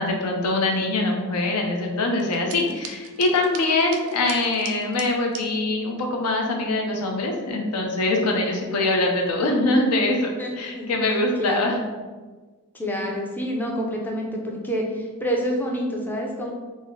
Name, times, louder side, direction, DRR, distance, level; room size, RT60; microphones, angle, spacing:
voice 1, 0.0-10.3 10.6-11.8, left 2 dB, 85° left, 2 dB, 0.6 m, -23 dB
sound 1, 2.2-5.5, right 6 dB, 65° right, 0.3 m, -40 dB
voice 2, 10.4-10.9 11.4-11.8 12.7-16.5, equal, 10° left, -1 dB, 0.4 m, -27 dB
3.1 x 2.0 x 3.6 m, 1.3 s
head